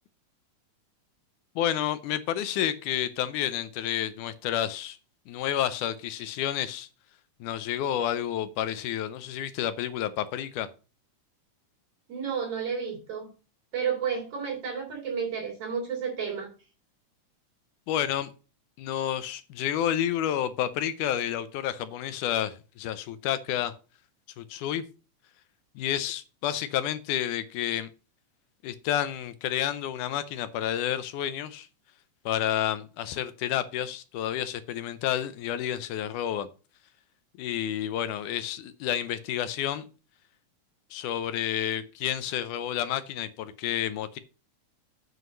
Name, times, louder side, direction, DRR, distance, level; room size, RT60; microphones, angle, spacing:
voice 1, 1.6-5.0 5.3-6.9 7.4-10.7 17.9-18.3 18.8-23.7 24.4-24.8 25.8-27.9 28.6-31.7 32.3-36.5 37.4-39.8 40.9-44.2, left 11 dB, 80° left, 2.1 m, -30 dB
voice 2, 12.1-13.3 13.7-16.5, right 6 dB, 45° right, 4.1 m, -31 dB
7.8 x 5.1 x 6.5 m
omnidirectional pair, 3.7 m